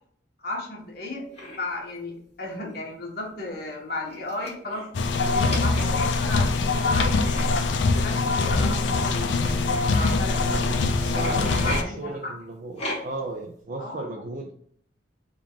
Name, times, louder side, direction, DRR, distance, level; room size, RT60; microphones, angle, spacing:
voice 1, 0.4-1.2 1.6-4.8 5.2-7.4 7.9-9.4 9.9-12.3 13.8-14.1, left 2 dB, 55° left, -2 dB, 1.2 m, -34 dB
sound 1, 1.3-1.6 2.7-2.9 3.2-3.3 4.1-5.0 5.4-6.2 7.3-7.5 8.5-8.6 9.4-10.1 11.1-11.8 12.8-13.3, left 1 dB, 35° left, 1.3 m, -35 dB
sound 2, 4.9-11.8, left 3 dB, 80° left, 0.4 m, -23 dB
voice 2, 10.5-14.5, right 2 dB, 45° right, 3 dB, 0.4 m, -35 dB
3.6 x 2.4 x 4.4 m, 0.66 s
head